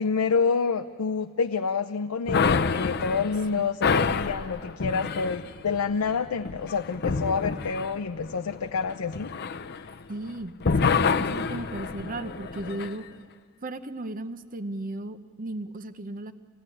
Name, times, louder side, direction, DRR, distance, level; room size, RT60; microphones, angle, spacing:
voice 1, 0.0-9.3, left 5 dB, 90° left, 8 dB, 0.6 m, -28 dB
sound 1, 2.3-10.3 10.6-12.9, left 5 dB, 50° left, 0.6 m, -28 dB
voice 2, 10.1-13.0 13.6-16.3, right 2 dB, 40° right, 11 dB, 0.8 m, -36 dB
27.0 x 16.5 x 9.9 m, 2.1 s
head